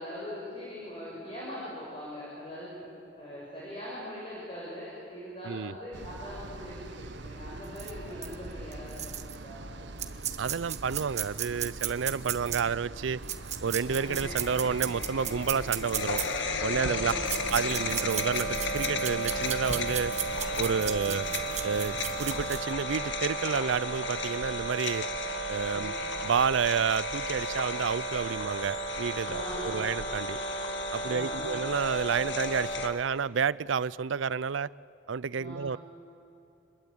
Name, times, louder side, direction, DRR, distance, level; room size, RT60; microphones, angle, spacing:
voice 1, 0.0-9.6 14.0-14.3 16.7-17.4 20.8-21.2 25.7-26.1 29.2-29.8 31.0-31.6 35.4-35.7, left 1 dB, 30° left, 6.3 m, -42 dB
sound 1, 5.9-22.6, right 2 dB, 65° right, 1.0 m, -43 dB
sound 2, 7.8-7.9 8.2-8.3 8.7-9.4 10.0-12.6 13.2-16.2 17.1-22.7, right 11 dB, 35° right, 1.3 m, -34 dB
voice 2, 10.4-13.2 13.6-16.2 16.6-17.1 17.5-20.1 20.6-21.3 21.6-25.1 25.5-25.9 26.2-30.4 30.9-34.7 35.1-35.8, right 6 dB, 80° right, 0.5 m, -30 dB
sound 3, 13.9-32.9, left 1 dB, 70° left, 1.8 m, -33 dB
27.0 x 22.0 x 8.8 m
head